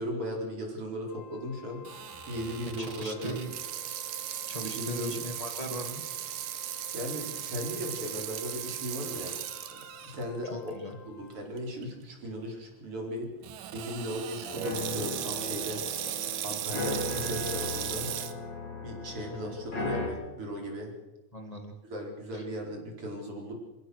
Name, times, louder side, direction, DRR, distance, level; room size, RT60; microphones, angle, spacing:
voice 1, 0.0-1.8 2.3-3.4 4.6-5.3 6.9-9.3 10.0-13.3 13.7-15.8 16.1-18.1 18.8-20.9 21.8-23.5, equal, 40° right, 1 dB, 5.2 m, -37 dB
Wind instrument woodwind instrument, 1.0-11.6, left 7 dB, 90° left, 3.5 m, -52 dB
Water tap faucet / Sink (filling or washing), 1.8-10.2 10.7-10.8 11.6-11.8 13.4-18.3, right 11 dB, 75° right, 2.7 m, -37 dB
voice 2, 2.8-3.5 4.5-6.0 10.5-10.9 19.3-19.6 21.3-21.7 22.3-22.4, equal, 70° left, 5 dB, 0.3 m, -39 dB
sound 1, 14.4-20.1, left 3 dB, 35° left, 4.4 m, -36 dB
28.0 x 15.5 x 6.4 m, 1.0 s
omnidirectional pair, 3.9 m